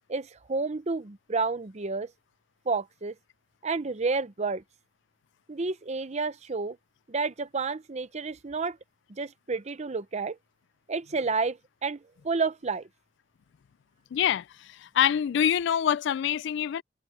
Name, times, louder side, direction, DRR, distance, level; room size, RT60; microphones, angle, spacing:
voice 1, 0.0-2.1 2.7-3.1 3.6-4.6 5.5-6.8 7.1-8.8 9.1-10.4 10.9-12.9, right 4 dB, 35° right, 0.7 m, -30 dB
voice 2, 14.1-16.8, left 9 dB, 65° left, 0.3 m, -25 dB
head